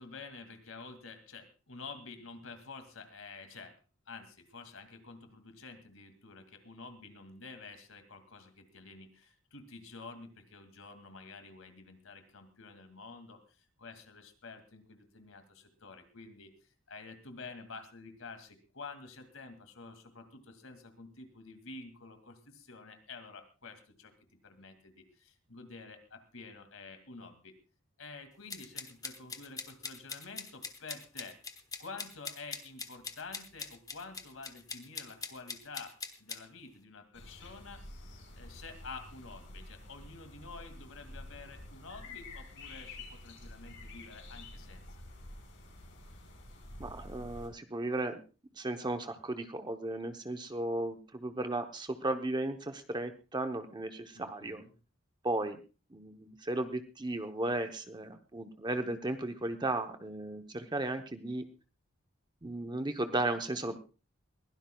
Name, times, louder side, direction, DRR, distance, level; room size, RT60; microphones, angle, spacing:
voice 1, 0.0-3.8 4.1-24.1 24.4-27.5 28.0-31.4 31.8-37.8 38.3-44.8 54.1-54.7, left 4 dB, 85° left, 7 dB, 2.3 m, -49 dB
sound 1, 28.5-36.4, left 4 dB, 20° left, 1.2 m, -42 dB
sound 2, 37.1-47.5, left 1 dB, 65° left, 4.8 m, -49 dB
voice 2, 46.8-48.2 48.6-54.6 55.2-55.6 55.9-61.5 62.4-63.8, right 2 dB, 20° right, 7 dB, 0.8 m, -35 dB
22.0 x 16.0 x 2.3 m, 0.33 s
head